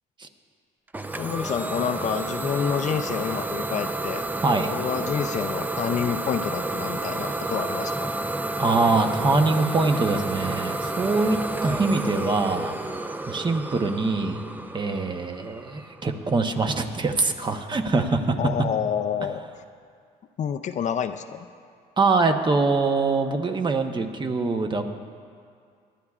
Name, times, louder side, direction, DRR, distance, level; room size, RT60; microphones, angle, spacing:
Idling / Domestic sounds home sounds, 0.9-16.5, right 2 dB, 10° right, 0.5 m, -30 dB
voice 1, 1.2-4.3 4.7-8.1 18.4-19.4 20.4-21.5, left 8 dB, 45° left, 9 dB, 0.5 m, -28 dB
voice 2, 8.6-14.4 14.7-18.4 22.0-24.9, right 3 dB, 25° right, 6 dB, 0.9 m, -24 dB
24.0 x 11.5 x 2.4 m, 2.2 s
cardioid pair, 110°, 17 cm